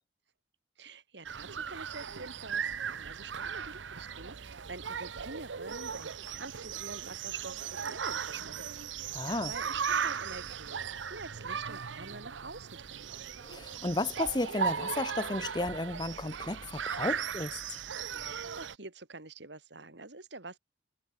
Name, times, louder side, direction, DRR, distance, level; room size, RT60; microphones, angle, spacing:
voice 1, 0.8-8.6 8.9-13.1 18.2-20.6, right 3 dB, 70° right, 2.6 m, -47 dB
sound 1, 1.2-18.7, right 7 dB, 90° right, 0.8 m, -37 dB
voice 2, 9.1-9.5 13.5-17.6, left 2 dB, 25° left, 1.2 m, -33 dB
head